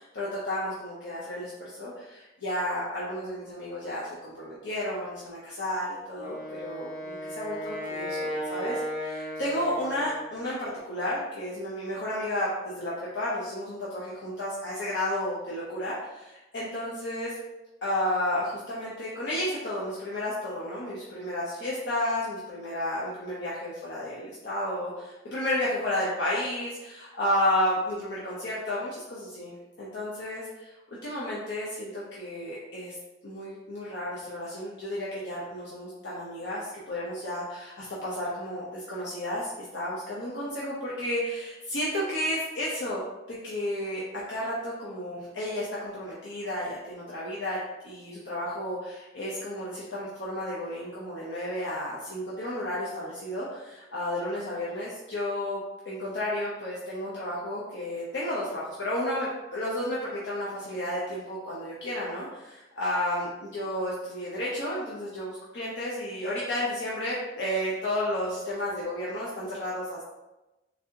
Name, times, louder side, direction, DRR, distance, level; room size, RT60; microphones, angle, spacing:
voice 1, 0.0-17.3 17.8-32.9 33.2-43.0 43.3-44.0 44.3-47.6 47.8-55.6 55.8-70.1, left 1 dB, 85° left, -8 dB, 0.7 m, -32 dB
Wind instrument woodwind instrument, 6.2-10.4, equal, 45° left, 1.0 m, -35 dB
4.0 x 2.7 x 2.7 m, 1.0 s
head